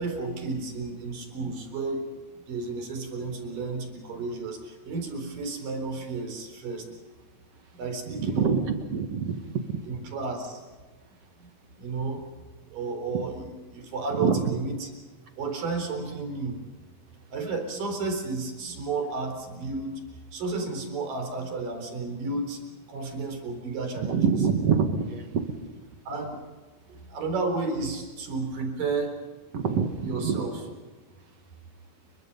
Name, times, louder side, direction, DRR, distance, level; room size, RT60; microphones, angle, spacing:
voice 1, 0.0-2.1 2.5-7.0 7.7-8.5 9.9-10.6 11.4-11.5 11.8-14.9 15.4-16.6 17.3-20.0 20.3-22.6 22.9-24.2 26.1-26.4 26.9-29.1 30.0-30.6, right 3 dB, 75° right, 4 dB, 5.7 m, -32 dB
voice 2, 8.1-9.8 14.1-14.5 24.0-25.6 29.5-30.4, right 6 dB, 55° right, 6 dB, 2.4 m, -26 dB
29.0 x 23.5 x 5.5 m, 1.3 s
omnidirectional pair, 3.9 m